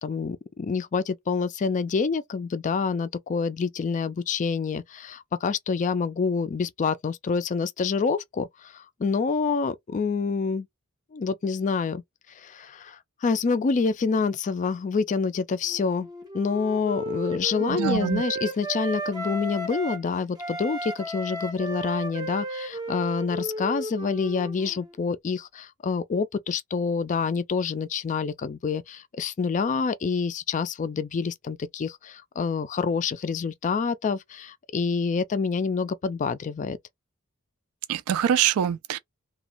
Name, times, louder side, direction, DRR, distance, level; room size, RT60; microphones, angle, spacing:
voice 1, 0.0-10.7 11.1-12.0 12.4-16.1 16.3-36.8, left 5 dB, 35° left, 0.3 m, -27 dB
Wind instrument woodwind instrument, 15.7-20.1 20.4-24.9, right 1 dB, 20° right, 0.5 m, -34 dB
voice 2, 17.7-18.2 37.9-39.0, right 9 dB, 80° right, 0.3 m, -24 dB
2.9 x 2.2 x 2.5 m
head